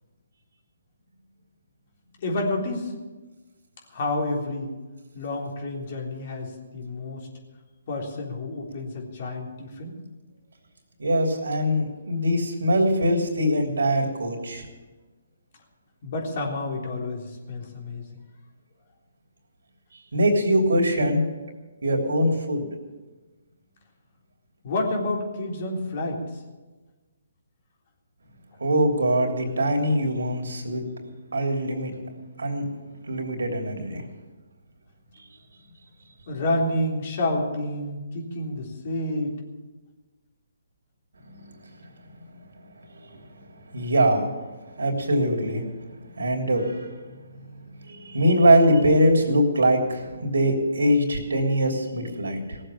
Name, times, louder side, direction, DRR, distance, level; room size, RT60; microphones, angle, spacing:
voice 1, 2.2-2.9 3.9-4.7 5.1-7.3 7.9-10.0 16.0-18.3 24.6-26.2 36.3-39.4, left 2 dB, 50° left, 0 dB, 3.6 m, -29 dB
voice 2, 11.0-14.6 20.1-21.2 21.8-22.6 28.6-30.8 31.3-31.9 32.4-32.6 33.1-34.0 41.3-41.4 43.7-44.3 44.8-45.6 46.2-46.9 47.8-52.6, equal, 75° right, 1 dB, 3.2 m, -22 dB
17.5 x 7.8 x 8.7 m, 1.3 s
hypercardioid pair, 145°, 0 cm